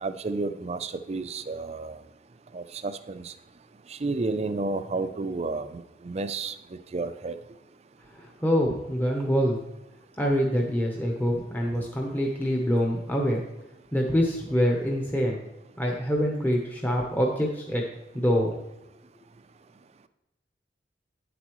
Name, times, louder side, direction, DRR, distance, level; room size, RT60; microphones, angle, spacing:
voice 1, 0.0-2.0 2.5-3.3 4.0-6.5 6.9-7.4, right 3 dB, 35° right, 11 dB, 0.4 m, -31 dB
voice 2, 8.1-9.6 10.2-13.4 13.9-15.4 15.8-17.9 18.1-18.5, equal, 10° left, -1 dB, 0.8 m, -25 dB
9.4 x 8.0 x 3.1 m, 0.89 s
head